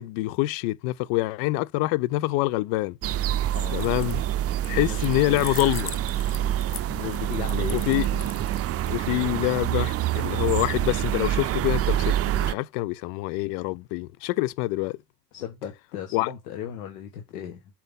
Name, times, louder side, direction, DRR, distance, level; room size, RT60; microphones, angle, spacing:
voice 1, 0.0-3.0 3.7-4.2 4.7-5.9 7.7-8.1 8.9-15.0 16.1-16.3, left 19 dB, 55° left, 0.6 m, -26 dB
sound 1, 3.0-12.5, right 12 dB, 30° right, 0.5 m, -26 dB
sound 2, 3.7-4.3 4.6-8.9, left 9 dB, 30° left, 0.8 m, -40 dB
voice 2, 4.6-5.0 6.3-7.8 8.1-8.5 15.3-17.6, left 9 dB, 75° left, 1.5 m, -36 dB
7.4 x 4.4 x 3.7 m
hypercardioid pair, 75°, 46 cm